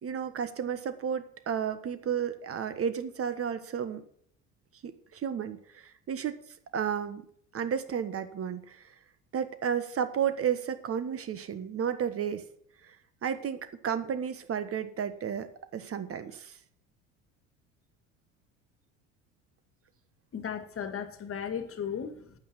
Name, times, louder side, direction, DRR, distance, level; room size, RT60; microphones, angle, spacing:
voice 1, 0.0-4.0 4.8-6.3 6.7-7.2 7.5-8.8 9.3-12.4 13.2-15.5 15.7-16.5, right 8 dB, 35° right, 11 dB, 1.4 m, -32 dB
voice 2, 20.3-22.3, left 7 dB, 35° left, 10 dB, 1.9 m, -36 dB
9.3 x 9.2 x 7.6 m, 0.64 s
hypercardioid pair, 70°, 37 cm